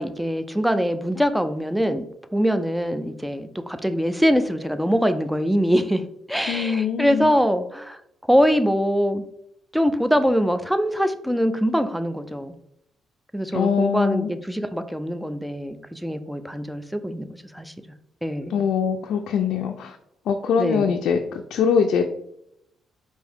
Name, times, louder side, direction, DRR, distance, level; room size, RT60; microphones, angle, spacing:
voice 1, 0.0-2.0 2.3-6.0 6.3-8.0 8.3-9.2 9.7-12.5 13.3-17.7 18.2-18.6 20.6-20.9, equal, ahead, 9 dB, 0.4 m, -23 dB
voice 2, 6.5-7.3 13.5-14.3 18.5-20.0 20.3-22.0, left 6 dB, 75° left, 4 dB, 0.3 m, -23 dB
4.6 x 2.6 x 3.4 m, 0.77 s
cardioid pair, 90°, 0 cm